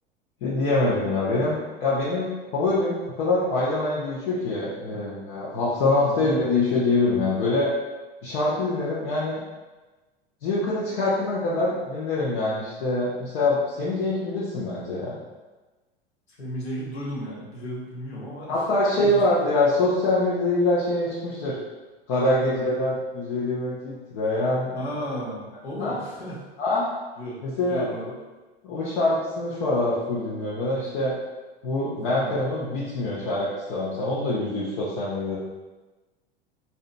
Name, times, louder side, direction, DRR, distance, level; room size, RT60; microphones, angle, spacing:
voice 1, 0.4-7.7 8.2-9.4 10.4-15.2 18.5-21.5 22.1-24.8 25.8-25.9 26.6-26.9 27.4-27.9 28.6-31.1 31.6-35.4, left 2 dB, 60° left, -8 dB, 0.9 m, -24 dB
voice 2, 6.0-6.3 16.4-18.6 19.0-19.2 22.4-22.6 24.7-26.4 27.2-28.1 32.1-32.4, equal, 85° left, -5 dB, 1.2 m, -34 dB
4.7 x 2.8 x 2.2 m, 1.2 s
hypercardioid pair, 85°, 31 cm